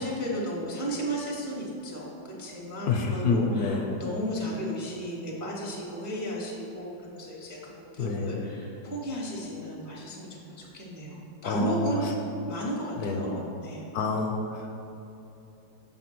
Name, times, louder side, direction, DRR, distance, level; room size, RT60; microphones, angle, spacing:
voice 1, 0.0-12.1 12.5-13.9, equal, 25° right, -4 dB, 0.4 m, -34 dB
voice 2, 2.9-3.9 8.0-8.4 11.4-12.1 13.0-13.3 13.9-14.8, left 3 dB, 70° left, 2 dB, 1.0 m, -28 dB
6.7 x 4.2 x 5.9 m, 2.9 s
omnidirectional pair, 1.9 m